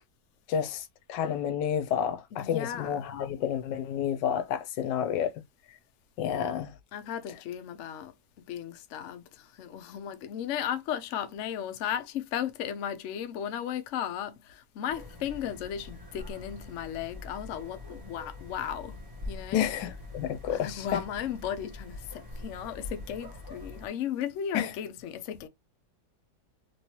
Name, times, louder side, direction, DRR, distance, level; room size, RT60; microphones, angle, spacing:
voice 1, 0.5-5.3 6.2-6.7 19.5-21.0 24.5-24.7, left 9 dB, 90° left, 1.3 m, -30 dB
voice 2, 2.3-3.1 6.9-8.1 8.5-19.7 20.5-25.5, left 9 dB, 65° left, 0.7 m, -35 dB
sound 1, 14.9-23.9, left 2 dB, 15° right, 1.0 m, -44 dB
3.1 x 3.1 x 2.9 m
omnidirectional pair, 1.8 m